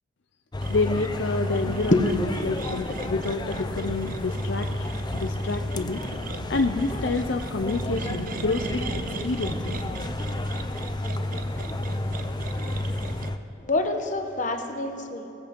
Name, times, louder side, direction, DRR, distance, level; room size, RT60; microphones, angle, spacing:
sound 1, 0.5-13.4, left 1 dB, 20° left, 0.5 m, -31 dB
sound 2, 0.6-13.3, right 3 dB, 45° right, 0.6 m, -39 dB
voice 1, 0.7-4.9 5.1-6.0 6.5-9.7, left 3 dB, 65° left, 6 dB, 0.6 m, -28 dB
voice 2, 13.6-15.4, left 2 dB, 40° left, 6 dB, 1.1 m, -25 dB
18.0 x 14.5 x 5.3 m, 2.9 s
head